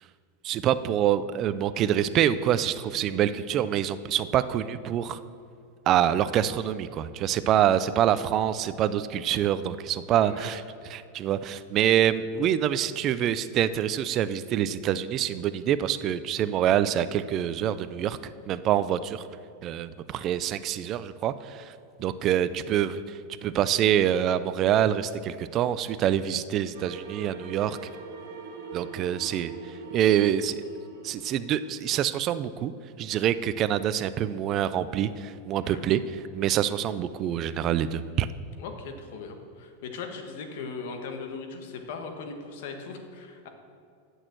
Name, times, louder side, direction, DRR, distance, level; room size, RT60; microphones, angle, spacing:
voice 1, 0.4-5.2 5.9-10.6 10.9-19.2 19.6-21.7 22.0-27.8 28.7-30.6 31.0-32.7 33.0-36.0 36.3-38.3, right 10 dB, 35° right, 14 dB, 0.4 m, -26 dB
voice 2, 10.1-10.6 35.6-35.8 38.6-43.5, left 4 dB, 65° left, 5 dB, 1.5 m, -39 dB
sound 1, 26.7-32.1, right 4 dB, 80° right, 1.8 m, -42 dB
8.9 x 6.4 x 7.6 m, 2.4 s
supercardioid pair, 135°, 0 cm